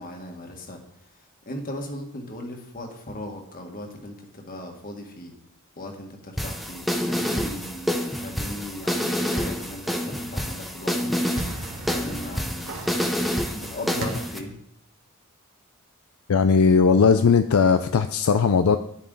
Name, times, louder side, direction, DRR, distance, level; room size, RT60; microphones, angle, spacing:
voice 1, 0.0-5.3 5.8-11.2 11.9-12.8 13.5-14.5, left 1 dB, 40° left, 2 dB, 1.8 m, -38 dB
sound 1, 6.4-14.4, equal, ahead, 0.8 m, -28 dB
sound 2, 11.3-14.5, right 1 dB, 60° right, 1.6 m, -37 dB
voice 2, 16.3-18.8, left 5 dB, 70° left, 8 dB, 0.4 m, -18 dB
10.5 x 8.8 x 4.0 m, 0.74 s
head